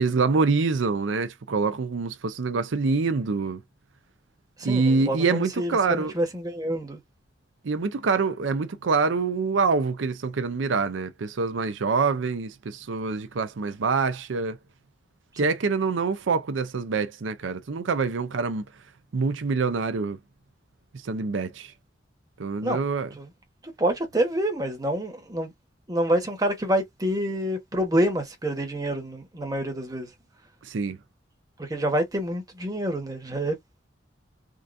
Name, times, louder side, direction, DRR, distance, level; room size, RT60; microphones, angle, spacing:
voice 1, 0.0-3.6 4.6-6.1 7.6-14.6 15.4-18.6 19.1-20.2 20.9-21.7 22.4-23.1 30.6-31.0, right 4 dB, 90° right, 0.5 m, -25 dB
voice 2, 4.6-7.0 15.4-15.5 22.6-22.8 23.2-23.3 23.8-25.5 25.9-30.1 31.6-33.6, right 1 dB, 20° right, 1.2 m, -27 dB
3.7 x 2.5 x 2.6 m
head